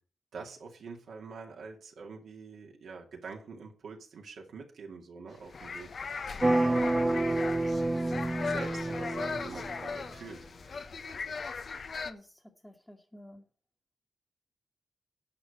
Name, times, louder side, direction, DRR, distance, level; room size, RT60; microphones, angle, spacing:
voice 1, 0.3-7.6 8.4-10.4, right 4 dB, 80° right, 0 dB, 2.2 m, -46 dB
sound 1, 5.4-12.1, left 5 dB, 60° left, 0.9 m, -38 dB
sound 2, 6.4-10.1, right 2 dB, 20° right, 0.5 m, -29 dB
voice 2, 12.0-13.5, left 1 dB, 10° left, -2 dB, 1.6 m, -52 dB
9.8 x 4.9 x 8.0 m, 0.40 s
cardioid pair, 60°, 0 cm